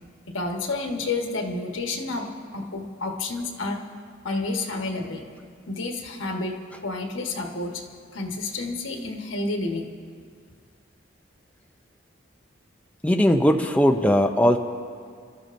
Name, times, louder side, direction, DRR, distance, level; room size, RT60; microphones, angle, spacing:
voice 1, 0.3-3.8 4.2-5.3 5.7-6.6 6.8-7.8 8.1-9.9, left 3 dB, 75° left, 2 dB, 1.4 m, -30 dB
voice 2, 13.0-14.6, equal, 5° left, 4 dB, 0.5 m, -19 dB
28.0 x 13.0 x 2.6 m, 2.1 s
head